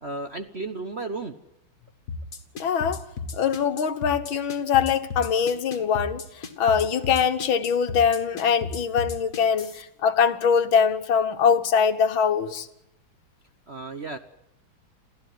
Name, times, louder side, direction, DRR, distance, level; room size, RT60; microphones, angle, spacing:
voice 1, 0.0-1.3 13.7-14.2, right 3 dB, 40° right, 1.0 m, -33 dB
sound 1, 2.1-9.8, left 4 dB, 40° left, 2.3 m, -34 dB
voice 2, 2.6-3.0 3.3-12.7, left 7 dB, 70° left, 2.0 m, -23 dB
28.5 x 15.0 x 9.4 m
omnidirectional pair, 2.3 m